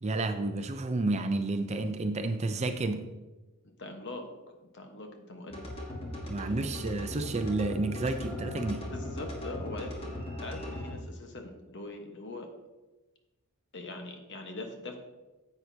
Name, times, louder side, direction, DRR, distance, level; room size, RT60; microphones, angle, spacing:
voice 1, 0.0-3.0 6.2-8.9, right 2 dB, 30° right, 8 dB, 0.5 m, -30 dB
voice 2, 3.8-4.3 4.6-5.7 8.9-12.5 13.7-15.0, left 2 dB, 55° left, 4 dB, 1.2 m, -42 dB
sound 1, 5.5-10.9, left 1 dB, 25° left, 1.5 m, -38 dB
10.5 x 8.0 x 2.8 m, 1.1 s
head